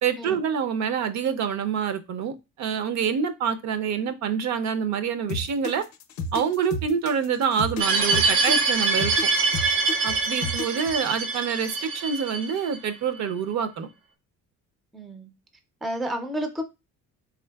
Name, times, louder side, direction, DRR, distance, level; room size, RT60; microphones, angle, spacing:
voice 1, 0.0-5.8 6.3-9.3 10.0-13.9, right 7 dB, 55° right, 0.5 m, -26 dB
sound 1, 5.3-10.9, left 3 dB, 55° left, 0.5 m, -32 dB
sound 2, 7.8-12.8, right 4 dB, 75° right, 0.9 m, -24 dB
voice 2, 14.9-15.3 15.8-16.6, equal, ahead, 0.3 m, -31 dB
3.8 x 3.6 x 2.2 m
cardioid pair, 140°, 33 cm